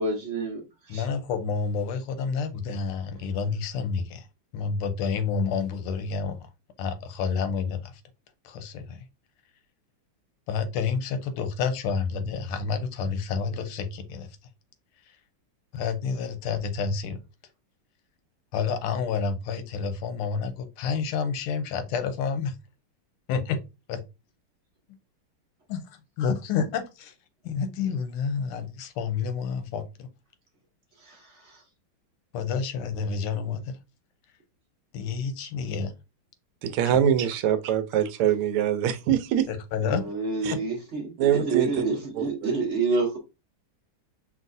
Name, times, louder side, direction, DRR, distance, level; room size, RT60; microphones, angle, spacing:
voice 1, 0.0-1.1 31.0-31.6 39.8-43.2, right 3 dB, 40° right, 1.2 m, -29 dB
voice 2, 0.9-4.3 4.5-6.4 6.8-8.0 8.4-9.0 10.5-14.3 15.1-15.2 15.7-17.2 18.5-22.5 23.3-23.6 23.9-24.0 25.7-25.8 26.2-27.1 27.4-30.1 32.3-33.8 34.9-35.9 36.8-37.0 39.5-40.0, left 5 dB, 90° left, 1.6 m, -29 dB
voice 3, 36.6-39.5 40.4-40.5 41.2-41.7 42.2-42.5, right 10 dB, 80° right, 1.5 m, -24 dB
5.3 x 3.0 x 2.6 m
omnidirectional pair, 2.4 m